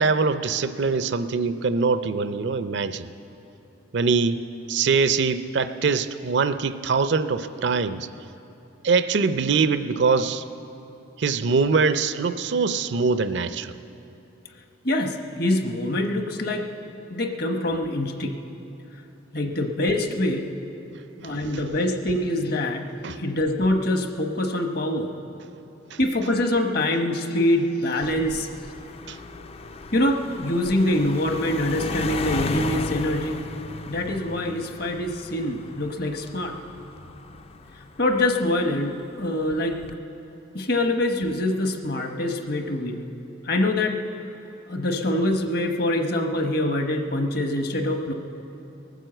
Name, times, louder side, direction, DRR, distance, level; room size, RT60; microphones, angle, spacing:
voice 1, 0.0-3.1 3.9-4.4 4.7-8.1 8.8-10.4 11.2-13.7 21.2-21.3 23.0-23.2 25.9-26.0 29.1-29.2, right 4 dB, 55° right, 12 dB, 0.5 m, -23 dB
voice 2, 14.8-16.7 17.1-18.3 19.3-20.5 21.2-25.1 26.0-28.5 29.9-33.4 33.9-36.6 38.0-39.8 40.5-43.0 43.4-44.0 44.7-48.1, left 1 dB, 50° left, 5 dB, 1.0 m, -24 dB
sound 1, 28.0-38.7 39.5-39.9, left 3 dB, 30° left, 0.4 m, -35 dB
19.5 x 9.1 x 7.7 m, 2.9 s
head